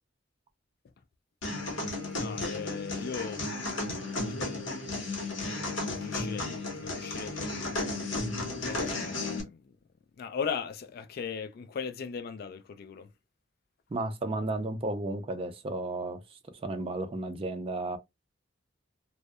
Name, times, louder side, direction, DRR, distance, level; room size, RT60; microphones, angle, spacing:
sound 1, 1.4-9.4, left 2 dB, 75° left, 0.8 m, -34 dB
voice 1, 2.1-3.9 4.2-5.4 5.9-7.6 8.7-9.7 10.2-13.1, left 6 dB, 50° left, 0.3 m, -39 dB
voice 2, 13.9-18.0, right 2 dB, 30° right, 0.4 m, -33 dB
2.6 x 2.0 x 2.3 m
head